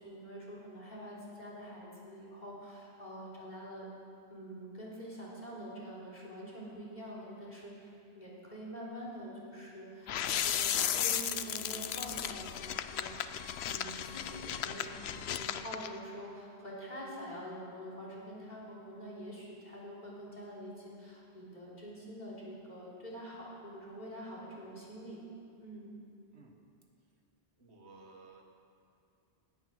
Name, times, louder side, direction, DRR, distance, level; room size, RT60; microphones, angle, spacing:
voice 1, 0.0-3.9 4.3-13.1 13.6-25.2 25.6-25.9, equal, 45° left, -5 dB, 3.5 m, -46 dB
sound 1, 10.1-15.9, left 10 dB, 80° left, 0.9 m, -35 dB
voice 2, 27.6-28.4, right 3 dB, 90° right, 2 dB, 1.8 m, -55 dB
17.0 x 9.9 x 6.1 m, 2.5 s
omnidirectional pair, 1.1 m